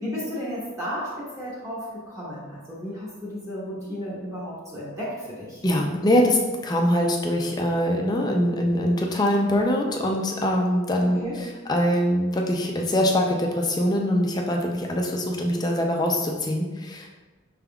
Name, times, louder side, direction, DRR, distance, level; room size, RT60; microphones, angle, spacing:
voice 1, 0.0-5.6 11.0-11.4, equal, 15° right, -8 dB, 1.0 m, -33 dB
voice 2, 5.6-11.2 11.7-17.1, equal, 20° left, 1 dB, 0.4 m, -23 dB
5.9 x 3.5 x 2.3 m, 1.3 s
head